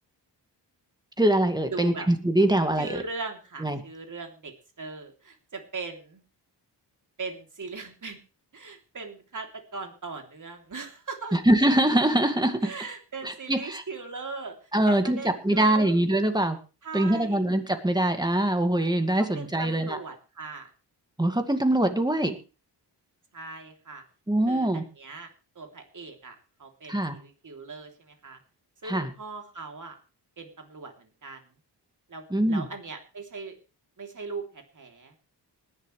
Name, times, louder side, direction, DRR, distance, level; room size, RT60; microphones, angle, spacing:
voice 1, 1.2-3.0 3.6-3.8 11.3-12.7 13.2-13.8 14.7-16.6 16.9-20.0 21.2-22.4 24.3-24.8 26.9-27.1 28.8-29.1 32.3-32.7, right 1 dB, 10° right, 7 dB, 2.1 m, -23 dB
voice 2, 1.7-2.1 2.8-6.2 7.2-8.2 8.5-11.4 12.6-14.6 14.8-16.0 16.8-17.4 19.2-20.7 23.3-24.0 24.4-25.3 25.5-28.4 28.8-30.0 30.4-31.4 32.1-33.5 34.0-35.2, right 4 dB, 45° right, 4 dB, 3.3 m, -39 dB
20.0 x 11.0 x 3.3 m, 0.32 s
cardioid pair, 90°, 42 cm